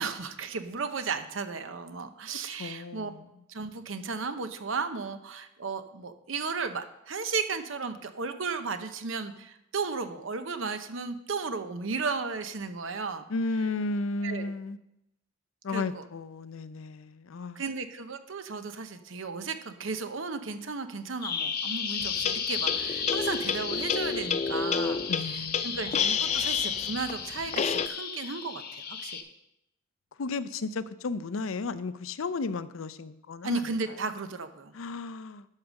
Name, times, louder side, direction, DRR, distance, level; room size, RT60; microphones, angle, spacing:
voice 1, 0.0-3.1 3.5-13.3 14.2-14.5 15.7-16.0 17.6-29.2 33.4-34.7, right 4 dB, 75° right, 9 dB, 0.8 m, -34 dB
voice 2, 2.6-3.3 13.3-14.8 15.6-17.6 25.1-25.9 26.3-26.4 30.2-33.6 34.7-35.5, left 3 dB, 85° left, 14 dB, 0.5 m, -34 dB
Bird vocalization bird call bird song, 21.2-29.2, left 6 dB, 50° left, 0.9 m, -34 dB
sound 1, 22.0-27.9, left 6 dB, 35° left, 0.4 m, -30 dB
12.0 x 4.9 x 6.3 m, 0.85 s
head